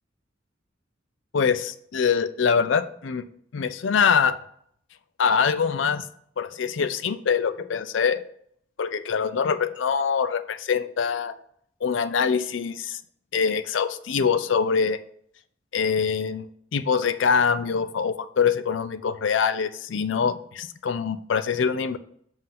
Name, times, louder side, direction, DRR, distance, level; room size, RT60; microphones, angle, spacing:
voice 1, 1.3-3.2 3.5-4.4 5.2-6.0 6.4-8.2 8.8-11.3 11.8-13.0 13.3-15.0 15.7-16.4 16.7-22.0, left 6 dB, 75° left, 13 dB, 0.5 m, -24 dB
7.5 x 2.6 x 5.7 m, 0.65 s
head